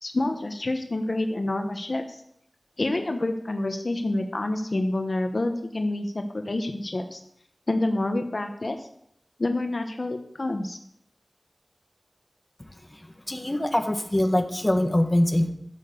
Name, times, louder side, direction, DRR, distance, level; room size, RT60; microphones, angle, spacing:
voice 1, 0.0-2.2 2.8-7.2 7.7-8.9 9.4-10.8, left 2 dB, 60° left, 5 dB, 1.1 m, -28 dB
voice 2, 13.3-15.5, left 1 dB, 20° left, 5 dB, 1.4 m, -23 dB
12.0 x 6.9 x 6.7 m, 0.73 s
wide cardioid pair, 65°, 0 cm